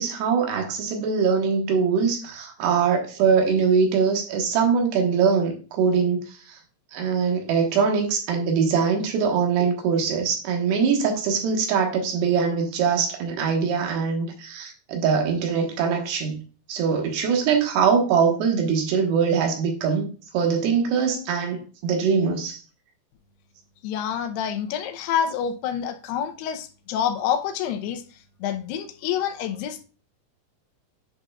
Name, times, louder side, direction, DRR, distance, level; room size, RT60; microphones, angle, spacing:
voice 1, 0.0-6.6 6.9-16.4 16.7-20.1 20.3-22.6, right 6 dB, 85° right, 3.5 m, -22 dB
voice 2, 23.8-28.0 28.4-29.8, left 9 dB, 80° left, 2.8 m, -27 dB
9.3 x 5.6 x 2.4 m
omnidirectional pair, 4.7 m